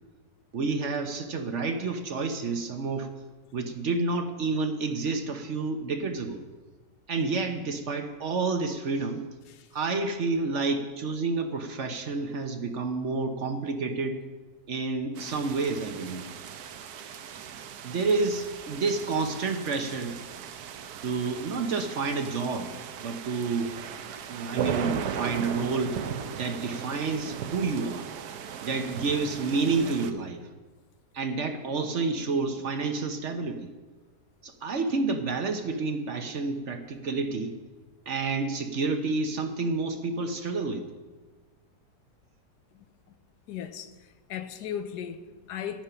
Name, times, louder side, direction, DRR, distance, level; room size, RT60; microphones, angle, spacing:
voice 1, 0.5-3.1 3.5-6.4 7.1-9.3 9.7-14.2 14.7-16.3 17.8-20.2 21.0-22.7 23.0-23.7 24.3-26.0 26.4-28.1 28.6-30.5 31.1-33.7 34.4-37.6 38.1-40.9, right 3 dB, 55° right, 1.0 m, -29 dB
sound 1, 15.2-30.1, right 8 dB, 75° right, 1.2 m, -37 dB
voice 2, 42.7-43.2 43.5-45.8, left 9 dB, 85° left, 1.3 m, -38 dB
11.5 x 8.9 x 5.7 m
omnidirectional pair, 1.7 m